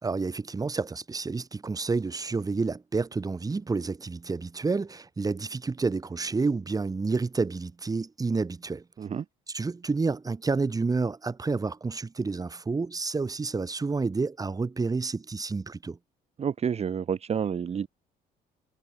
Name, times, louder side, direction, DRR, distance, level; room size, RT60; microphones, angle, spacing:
voice 1, 0.0-8.8 9.5-16.0, right 4 dB, 20° right, 3.3 m, -29 dB
voice 2, 16.4-17.9, right 7 dB, 40° right, 2.1 m, -29 dB
cardioid pair, 110°, 17 cm